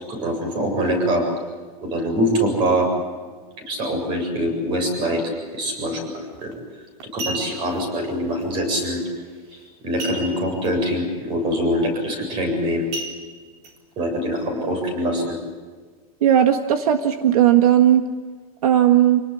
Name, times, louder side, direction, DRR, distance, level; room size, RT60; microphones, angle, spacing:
voice 1, 0.1-1.3 1.8-2.9 3.7-5.2 5.5-6.5 7.1-9.0 9.5-12.9 14.0-15.4, equal, 25° right, 5 dB, 7.6 m, -24 dB
sound 1, 6.3-6.5 7.0-7.8 10.0-10.7 11.0-11.1 11.6-11.8 12.9-13.7 14.3-14.4, right 2 dB, 45° right, 3.9 m, -32 dB
voice 2, 16.2-18.0 18.6-19.2, right 11 dB, 70° right, 6 dB, 1.7 m, -16 dB
28.0 x 18.5 x 8.4 m, 1.5 s
supercardioid pair, 175°, 19 cm